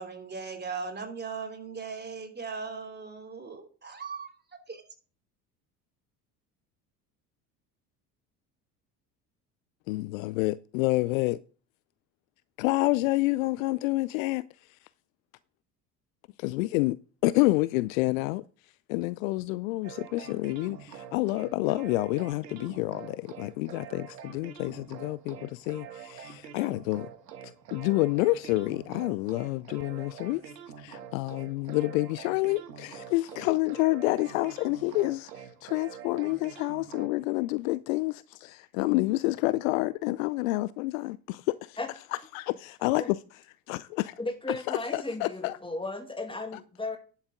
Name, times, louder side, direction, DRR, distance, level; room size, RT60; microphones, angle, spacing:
voice 1, 0.0-4.3 4.7-4.8, right 5 dB, 20° right, 3.0 m, -38 dB
voice 2, 9.9-11.4 12.6-14.4 16.4-17.0 17.2-18.4 18.9-27.1 27.7-30.4 30.8-41.8 42.3-43.2 43.7-44.2 44.7-45.6, left 20 dB, 55° left, 0.5 m, -28 dB
sound 1, 19.8-37.1, right 8 dB, 75° right, 1.4 m, -46 dB
voice 3, 44.2-47.0, left 2 dB, 10° left, 2.1 m, -35 dB
10.5 x 8.7 x 3.8 m
figure-of-eight pair, 65°, 49 cm